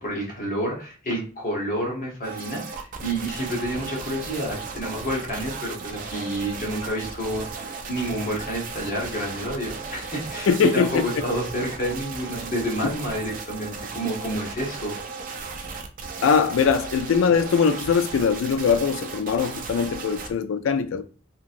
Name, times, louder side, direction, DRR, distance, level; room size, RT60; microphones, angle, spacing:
voice 1, 0.0-14.9, equal, 40° left, 1.1 m, -29 dB
sound 1, 2.2-20.3, right 4 dB, 40° right, 0.4 m, -36 dB
voice 2, 10.5-11.1 12.8-12.9 16.2-21.0, left 6 dB, 80° left, 0.3 m, -21 dB
2.8 x 2.7 x 2.5 m
head